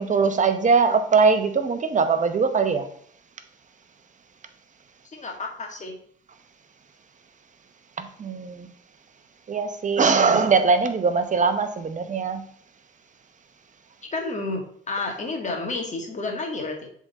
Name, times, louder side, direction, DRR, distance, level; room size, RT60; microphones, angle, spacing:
voice 1, 0.0-2.9 8.0-8.7 9.5-12.4, right 5 dB, 40° right, 8 dB, 0.9 m, -21 dB
voice 2, 5.0-6.0 14.1-16.9, left 3 dB, 35° left, 2 dB, 1.7 m, -30 dB
7.2 x 3.8 x 4.1 m, 0.62 s
cardioid pair, 90°, 20 cm